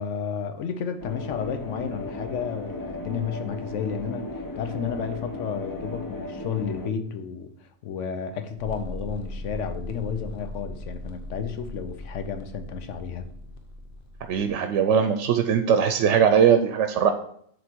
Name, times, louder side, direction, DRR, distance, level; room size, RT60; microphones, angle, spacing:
voice 1, 0.0-4.3 4.6-7.5 7.8-13.3, left 6 dB, 90° left, 8 dB, 1.1 m, -32 dB
sound 1, 1.0-6.9, left 2 dB, 30° left, 0.4 m, -36 dB
sound 2, 8.6-14.5, left 1 dB, 55° left, 0.9 m, -38 dB
voice 2, 14.3-17.1, right 7 dB, 80° right, 7 dB, 0.9 m, -20 dB
7.8 x 3.3 x 4.4 m, 0.65 s
omnidirectional pair, 1.2 m